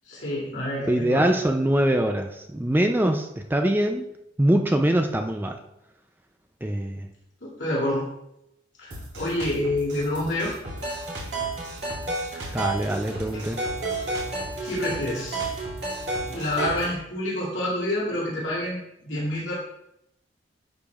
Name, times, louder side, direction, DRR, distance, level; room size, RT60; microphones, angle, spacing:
voice 1, 0.1-1.3 7.4-8.1 8.8-10.5 12.3-12.6 14.6-15.4 16.3-19.5, left 1 dB, 75° left, -7 dB, 2.4 m, -28 dB
voice 2, 0.8-4.1 4.4-5.6 6.6-7.1 12.5-13.6, right 1 dB, 10° right, 5 dB, 0.4 m, -23 dB
Drum kit, 8.9-16.9, equal, 80° right, 2.9 m, -39 dB
sound 1, 10.7-17.0, right 3 dB, 55° right, 2.6 m, -32 dB
11.5 x 7.2 x 2.4 m, 0.82 s
head